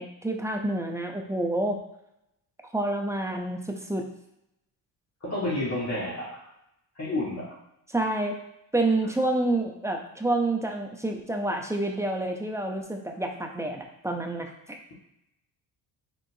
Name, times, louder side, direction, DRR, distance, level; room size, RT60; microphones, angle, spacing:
voice 1, 0.0-1.8 2.6-4.1 7.9-8.4 8.7-14.8, right 2 dB, 5° right, 3 dB, 0.6 m, -28 dB
voice 2, 5.2-6.4 6.9-7.6, left 1 dB, 40° left, -6 dB, 1.7 m, -30 dB
4.6 x 3.7 x 2.7 m, 0.82 s
cardioid pair, 70°, 42 cm